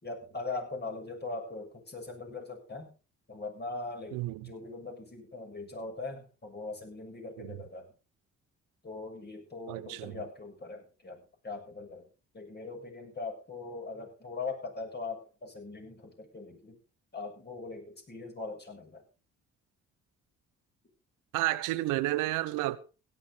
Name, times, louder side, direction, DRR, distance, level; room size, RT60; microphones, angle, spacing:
voice 1, 0.0-2.9 3.3-4.2 4.4-7.9 8.8-12.1 12.3-16.8 17.1-19.0, left 3 dB, 35° left, 7.0 m, -41 dB
voice 2, 4.1-4.5 7.4-7.6 9.7-10.2 21.3-22.8, right 17 dB, 85° right, 1.0 m, -31 dB
16.5 x 11.5 x 3.9 m
supercardioid pair, 60°, 31 cm